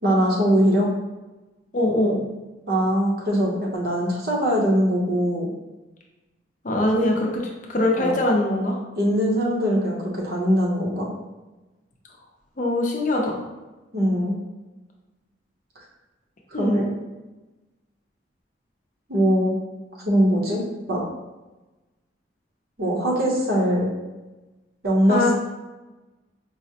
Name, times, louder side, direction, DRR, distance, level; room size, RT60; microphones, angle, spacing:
voice 1, 0.0-0.9 2.7-5.5 8.0-8.1 9.0-11.1 13.9-14.4 16.5-16.9 19.1-19.5 20.0-20.6 20.9-21.0 22.8-23.9 24.8-25.3, equal, 55° right, -2 dB, 0.8 m, -21 dB
voice 2, 1.7-2.2 6.6-7.4 7.7-8.8 12.6-13.4 16.5-16.9 25.1-25.3, left 1 dB, 45° left, 0 dB, 0.5 m, -22 dB
4.7 x 2.0 x 2.8 m, 1.1 s
head